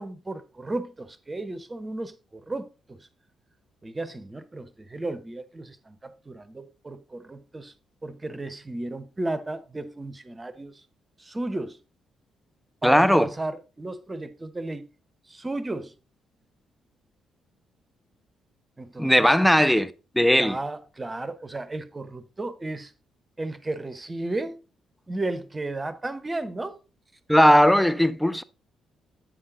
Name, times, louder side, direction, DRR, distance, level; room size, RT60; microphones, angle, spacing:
voice 1, 0.0-3.1 3.8-7.7 8.0-10.8 11.2-11.8 12.8-14.9 15.3-15.9 18.8-19.4 20.4-22.9 23.4-24.6 25.1-26.7, right 2 dB, 25° right, 1.0 m, -34 dB
voice 2, 12.8-13.3 19.0-20.6 27.3-28.4, equal, ahead, 0.6 m, -18 dB
8.6 x 5.7 x 3.8 m
figure-of-eight pair, 40°, 0 cm